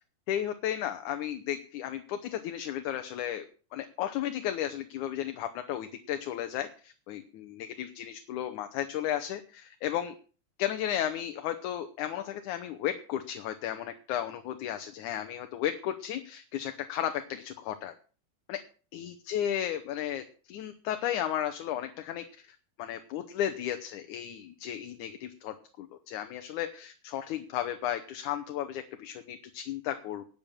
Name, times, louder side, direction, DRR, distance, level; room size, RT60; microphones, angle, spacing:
voice 1, 0.3-3.5 3.7-10.1 10.6-17.9 18.5-18.6 18.9-30.3, left 11 dB, 75° left, 7 dB, 2.3 m, -34 dB
12.0 x 8.9 x 7.4 m, 0.39 s
omnidirectional pair, 3.8 m